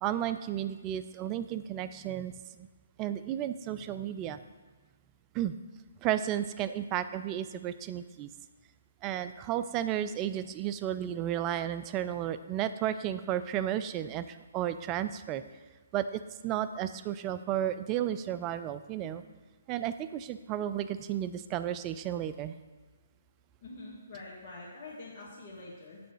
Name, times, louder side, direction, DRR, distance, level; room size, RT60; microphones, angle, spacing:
voice 1, 0.0-2.7 3.0-4.4 5.3-5.5 6.0-8.3 9.0-15.4 15.9-19.2 19.7-22.5, right 11 dB, 25° right, 12 dB, 0.3 m, -33 dB
voice 2, 23.6-26.0, left 2 dB, 45° left, -6 dB, 1.7 m, -45 dB
6.8 x 3.9 x 6.4 m, 1.3 s
figure-of-eight pair, 140°, 0 cm